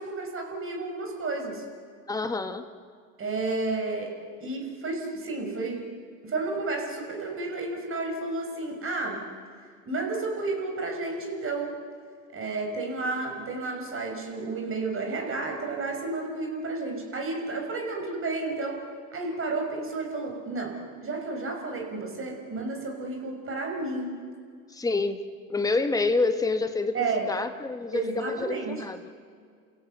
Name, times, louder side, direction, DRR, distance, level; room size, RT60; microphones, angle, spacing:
voice 1, 0.0-1.6 3.2-5.9 6.2-9.3 9.8-11.8 12.3-18.8 19.1-24.2 26.9-27.3 27.9-28.8, right 3 dB, 30° right, 2 dB, 6.0 m, -31 dB
voice 2, 2.1-2.6 24.7-25.2 25.5-26.9 27.3-29.1, left 3 dB, 10° left, 8 dB, 1.5 m, -27 dB
30.0 x 15.5 x 8.3 m, 2.1 s
hypercardioid pair, 85°, 43 cm